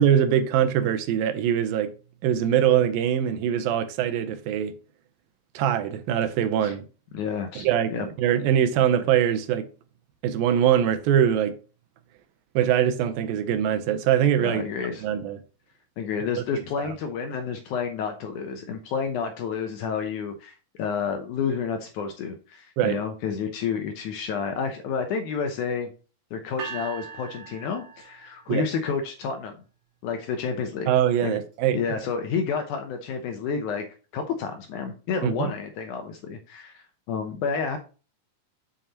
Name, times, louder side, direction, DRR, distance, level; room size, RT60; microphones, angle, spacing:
voice 1, 0.0-1.9 2.2-4.7 5.6-6.9 7.6-9.7 10.2-11.5 12.6-14.6 15.0-15.4 16.8-16.9 22.8-23.0 28.5-28.6 30.9-31.8 35.2-35.5, right 9 dB, 85° right, 2.5 m, -22 dB
voice 2, 7.1-8.1 14.4-15.0 16.0-25.9 26.3-29.5 30.0-30.9 31.2-31.4 31.7-33.9 34.1-37.8, left 6 dB, 75° left, 1.9 m, -30 dB
sound 1, 26.6-28.7, right 6 dB, 45° right, 3.1 m, -40 dB
7.5 x 6.8 x 2.9 m
omnidirectional pair, 4.2 m